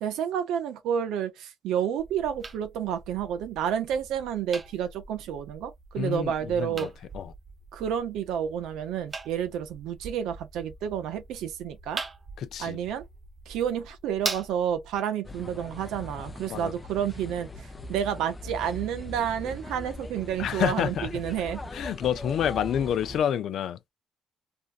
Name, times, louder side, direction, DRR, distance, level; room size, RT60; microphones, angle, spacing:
voice 1, 0.0-6.9 7.7-12.0 12.6-13.0 13.5-21.6, right 9 dB, 90° right, 0.5 m, -30 dB
sound 1, 2.0-15.0, right 3 dB, 35° right, 0.5 m, -42 dB
voice 2, 6.0-7.3 12.4-12.8 16.5-16.7 20.4-21.1 21.7-23.8, left 9 dB, 70° left, 0.4 m, -28 dB
sound 2, 15.2-23.2, left 1 dB, 20° left, 0.5 m, -40 dB
2.6 x 2.2 x 2.4 m
cardioid pair, 90°, 0 cm